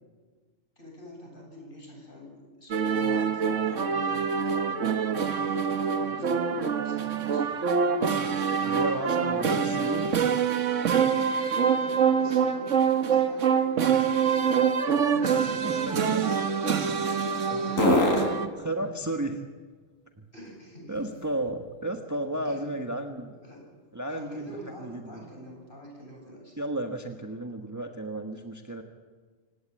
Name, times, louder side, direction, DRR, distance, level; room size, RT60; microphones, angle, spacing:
voice 1, 0.8-5.7 5.9-7.7 11.5-15.9 17.7-18.5 20.3-21.1 22.4-22.7 23.3-23.7 24.1-26.7, equal, 40° left, 0 dB, 8.4 m, -46 dB
sound 1, 2.7-18.5, right 6 dB, 70° right, 1.5 m, -25 dB
voice 2, 8.6-10.1 15.3-16.3 17.5-18.0 18.3-18.4 18.6-19.5 20.2-20.3 20.9-23.4 23.9-24.4 24.8-25.2 26.6-28.8, right 1 dB, 15° right, 4 dB, 1.4 m, -33 dB
sound 2, 12.8-21.8 22.3-26.1, left 1 dB, 80° left, 6.1 m, -35 dB
26.5 x 17.0 x 9.1 m, 1.4 s
omnidirectional pair, 1.3 m